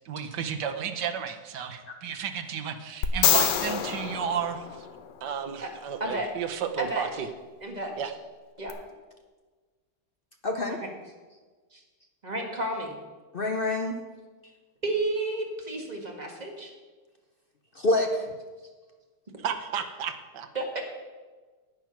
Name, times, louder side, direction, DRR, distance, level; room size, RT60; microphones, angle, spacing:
voice 1, 0.1-4.9 5.2-7.3 8.0-8.1 19.4-20.5, right 7 dB, 80° right, 6 dB, 1.5 m, -32 dB
sound 1, 3.0-5.3 8.7-8.8, left 9 dB, 85° left, 1.4 m, -26 dB
voice 2, 6.0-6.3 6.8-7.1 7.6-7.9 8.6-8.7 10.7-10.9 11.7-11.8 12.2-12.9 14.8-16.7 20.5-20.8, right 2 dB, 25° right, 1 dB, 1.8 m, -31 dB
voice 3, 10.4-10.8 13.3-14.0 17.7-18.3, left 2 dB, 55° left, 4 dB, 0.6 m, -26 dB
9.9 x 9.1 x 6.0 m, 1.4 s
omnidirectional pair, 1.8 m